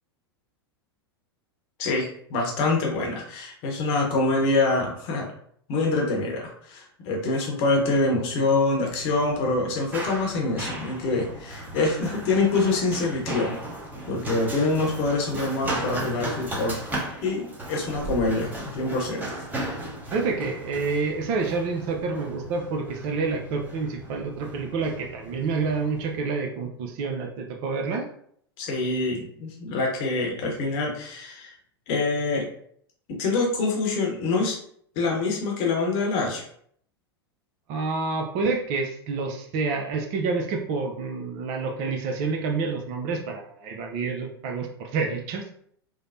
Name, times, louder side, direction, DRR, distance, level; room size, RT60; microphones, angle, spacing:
voice 1, 1.8-5.3 5.7-13.6 14.1-16.8 17.2-19.2 28.6-31.5 31.9-32.5 33.1-34.6 35.0-36.5, left 3 dB, 45° left, 0 dB, 0.8 m, -25 dB
Run, 8.9-26.2, right 1 dB, 15° right, 0.9 m, -36 dB
voice 2, 20.1-28.1 37.7-45.5, right 4 dB, 45° right, 3 dB, 0.5 m, -28 dB
3.2 x 2.0 x 2.6 m, 0.63 s
figure-of-eight pair, 90°, 13 cm